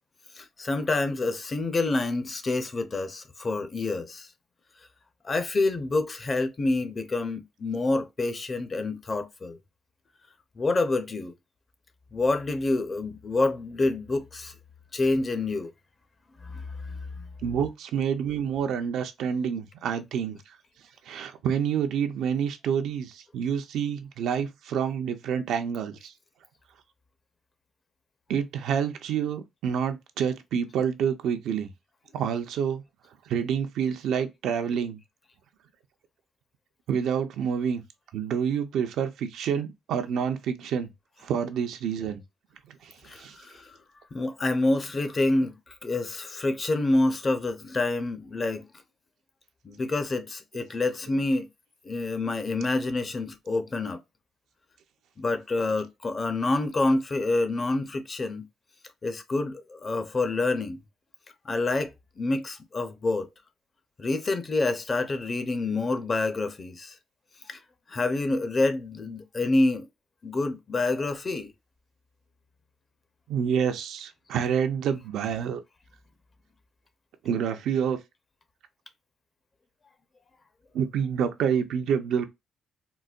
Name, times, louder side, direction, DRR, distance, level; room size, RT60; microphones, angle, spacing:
voice 1, 0.4-4.3 5.2-9.6 10.6-11.3 12.1-14.5 14.9-15.7 16.4-17.2 43.0-43.8 44.1-45.6 45.8-48.7 49.6-51.5 51.8-54.0 55.2-58.5 59.0-60.8 61.4-63.3 64.0-66.9 67.4-67.6 67.9-69.9 70.2-71.5, left 2 dB, 35° left, 0.6 m, -27 dB
voice 2, 17.4-20.4 21.1-26.1 28.3-31.7 32.1-32.8 33.3-35.0 36.9-37.8 38.1-40.9 41.2-42.2 42.7-43.4 73.3-75.6 77.2-78.0 80.7-82.3, right 7 dB, 80° right, 0.5 m, -28 dB
3.9 x 2.2 x 2.4 m
cardioid pair, 90°, 0 cm